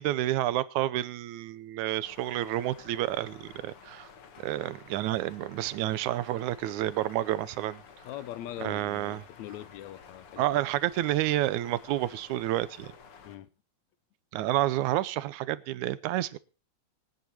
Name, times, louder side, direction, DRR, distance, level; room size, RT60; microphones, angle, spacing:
voice 1, 0.0-4.1 4.4-7.8 8.6-9.2 10.4-12.9 14.3-16.4, right 14 dB, 80° right, 2.1 m, -29 dB
sound 1, 2.0-13.4, left 6 dB, 55° left, 2.2 m, -52 dB
voice 2, 8.0-10.5 13.2-13.5, left 13 dB, 75° left, 2.1 m, -41 dB
24.5 x 9.4 x 2.9 m
omnidirectional pair, 3.4 m